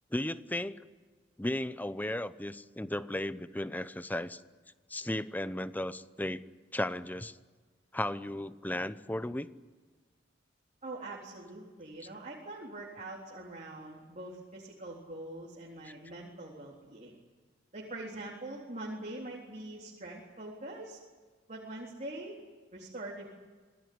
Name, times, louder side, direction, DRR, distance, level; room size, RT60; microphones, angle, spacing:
voice 1, 0.1-0.8 1.4-4.4 4.9-6.4 6.7-7.4 7.9-9.5 15.8-16.0, left 1 dB, 10° left, 14 dB, 0.8 m, -35 dB
voice 2, 10.8-17.2 17.7-21.0 21.5-22.4 22.7-23.3, right 2 dB, 40° right, -3 dB, 3.9 m, -43 dB
27.0 x 19.0 x 9.6 m, 1.4 s
head